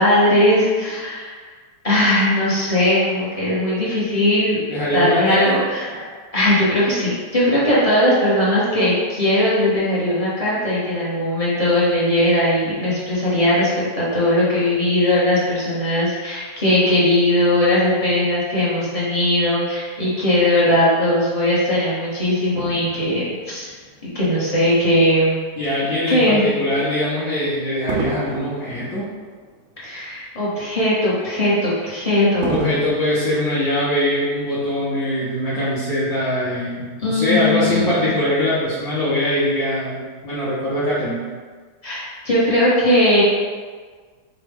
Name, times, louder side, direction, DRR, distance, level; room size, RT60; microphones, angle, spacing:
voice 1, 0.0-1.4 1.8-4.6 4.9-23.7 24.1-25.4 26.1-26.4 29.8-32.7 37.0-38.1 41.8-43.2, left 1 dB, 25° left, -9 dB, 0.8 m, -19 dB
voice 2, 4.7-5.6 25.6-29.0 32.5-41.3, left 1 dB, 55° left, -10 dB, 1.3 m, -22 dB
Fireworks, 22.6-25.1 25.8-26.0 27.9-30.4 30.8-30.9 32.4-34.3 35.0-35.1, right 3 dB, 75° right, 0.7 m, -34 dB
5.2 x 2.2 x 3.4 m, 1.5 s
omnidirectional pair, 1.9 m